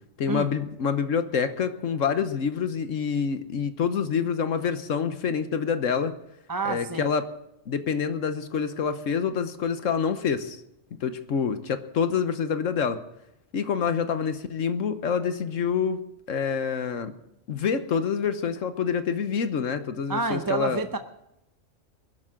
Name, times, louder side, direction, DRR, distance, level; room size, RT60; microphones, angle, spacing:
voice 1, 0.2-6.2 6.7-7.2 7.7-10.6 11.0-13.0 13.5-16.0 16.3-17.1 17.5-20.8, left 6 dB, 75° left, 10 dB, 1.3 m, -27 dB
voice 2, 6.5-7.1 20.1-21.0, right 4 dB, 20° right, 7 dB, 0.6 m, -28 dB
21.0 x 12.0 x 3.8 m, 0.83 s
omnidirectional pair, 1.3 m